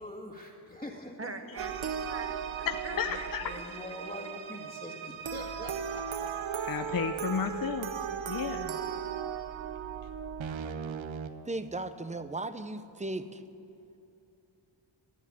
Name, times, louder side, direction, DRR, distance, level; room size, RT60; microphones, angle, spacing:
voice 1, 0.0-1.5 3.4-6.6, left 1 dB, 10° left, -6 dB, 1.9 m, -44 dB
voice 2, 1.2-3.6, right 3 dB, 30° right, 7 dB, 1.3 m, -43 dB
sound 1, 1.6-11.3, right 7 dB, 80° right, 0.9 m, -37 dB
voice 3, 2.7-3.4 6.7-7.9 8.3-8.8, left 7 dB, 50° left, 7 dB, 0.6 m, -32 dB
voice 4, 11.4-13.3, right 2 dB, 15° right, 11 dB, 0.7 m, -36 dB
14.5 x 10.0 x 8.7 m, 2.8 s
cardioid pair, 75°, 46 cm